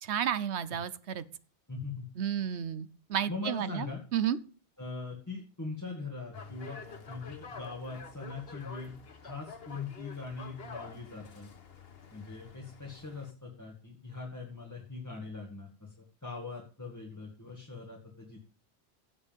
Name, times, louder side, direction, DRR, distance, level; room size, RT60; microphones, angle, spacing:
voice 1, 0.0-1.2 2.2-3.9 4.1-4.4, right 9 dB, 75° right, 15 dB, 1.1 m, -32 dB
voice 2, 1.7-2.1 2.4-2.6 3.3-4.0 4.8-6.8 7.1-8.9 9.2-11.5 12.1-18.4, left 3 dB, 15° left, -1 dB, 2.1 m, -41 dB
sound 1, 6.3-13.3, left 4 dB, 60° left, 1.3 m, -48 dB
16.0 x 7.5 x 3.5 m, 0.38 s
omnidirectional pair, 1.1 m